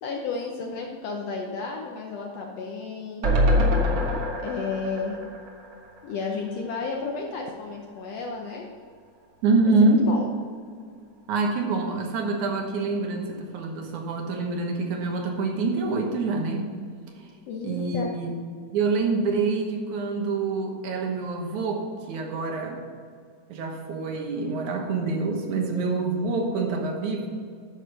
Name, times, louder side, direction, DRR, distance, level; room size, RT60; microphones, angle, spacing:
voice 1, 0.0-3.3 4.4-5.2 6.0-8.7 9.8-10.3 17.5-18.1, left 4 dB, 70° left, 0 dB, 1.6 m, -32 dB
sound 1, 3.2-6.5 6.8-6.9 7.2-7.3, left 1 dB, 50° right, 1.7 m, -25 dB
voice 2, 9.4-10.1 11.3-16.7 17.6-18.3 18.7-22.8 23.5-27.3, right 3 dB, 70° right, 2 dB, 2.5 m, -26 dB
10.0 x 6.5 x 6.4 m, 2.2 s
omnidirectional pair, 3.8 m